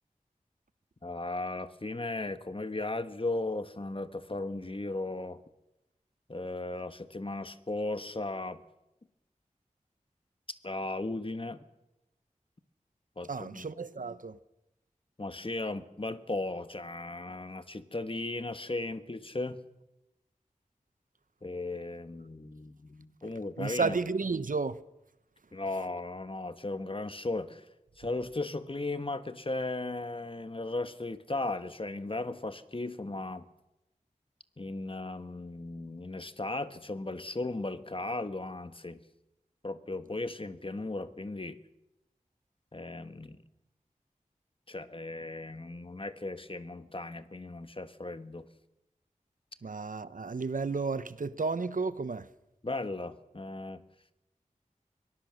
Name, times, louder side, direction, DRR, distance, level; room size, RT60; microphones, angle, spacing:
voice 1, 1.0-5.4 6.3-8.6 10.6-11.6 13.2-13.7 15.2-19.6 21.4-24.0 25.5-27.7 28.0-33.4 34.6-39.0 39.6-41.6 42.7-43.4 44.7-48.5 52.6-53.8, left 2 dB, 40° left, 1.3 m, -36 dB
voice 2, 13.3-14.4 23.6-24.8 49.6-52.3, right 4 dB, 75° right, 0.8 m, -32 dB
23.5 x 18.5 x 6.4 m
wide cardioid pair, 40°, 14 cm